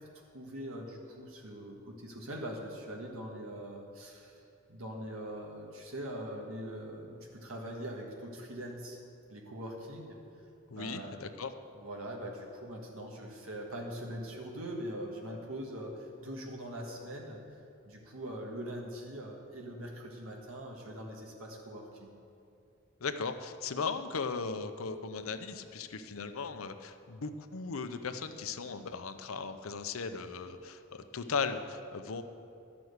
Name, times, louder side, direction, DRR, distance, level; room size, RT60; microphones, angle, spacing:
voice 1, 0.3-4.4 4.7-9.0 9.3-10.2 10.7-11.2 11.8-17.4 17.8-22.2, equal, 85° right, -1 dB, 1.5 m, -42 dB
voice 2, 10.7-11.5 23.0-32.2, left 5 dB, 90° left, 9 dB, 0.7 m, -37 dB
12.0 x 6.1 x 7.9 m, 2.6 s
head